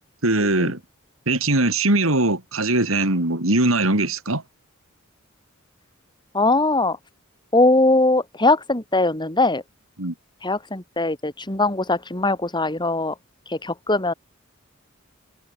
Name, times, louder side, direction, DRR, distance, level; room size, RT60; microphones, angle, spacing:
voice 1, 0.2-0.8 1.3-4.4 10.0-10.1, right 2 dB, 80° right, 4.1 m, -21 dB
voice 2, 6.3-7.0 7.5-9.6 10.4-13.1 13.5-14.1, left 2 dB, 20° left, 4.3 m, -20 dB
head